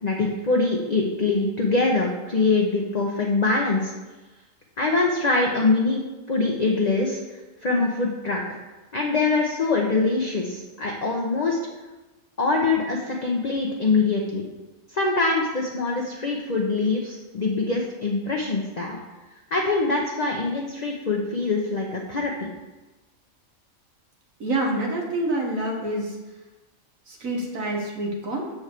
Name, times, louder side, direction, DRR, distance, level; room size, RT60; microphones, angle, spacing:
voice 1, 0.0-3.9 4.8-6.0 6.3-7.2 7.6-8.6 8.9-11.6 12.4-14.4 14.9-19.0 19.5-22.5, left 3 dB, 35° left, -1 dB, 0.8 m, -23 dB
voice 2, 24.4-26.2 27.1-28.5, right 1 dB, 90° right, -1 dB, 1.7 m, -27 dB
7.0 x 4.7 x 6.6 m, 1.1 s
omnidirectional pair, 1.4 m